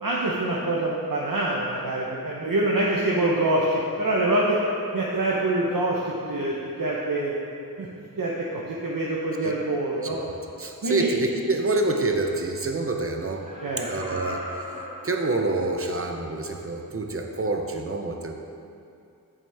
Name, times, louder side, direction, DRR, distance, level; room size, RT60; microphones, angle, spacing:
voice 1, 0.0-4.6 4.9-6.0 6.3-7.3 7.8-7.9 8.2-10.2 10.8-11.1 13.6-13.9, right 2 dB, 65° right, -4 dB, 0.9 m, -25 dB
voice 2, 10.1-13.5 13.9-14.5 15.0-18.3, right 2 dB, 40° right, 3 dB, 0.7 m, -27 dB
Laughter, 13.3-15.9 16.4-16.5, equal, 20° right, 1.5 m, -39 dB
8.1 x 7.3 x 3.4 m, 2.5 s
wide cardioid pair, 55°, 36 cm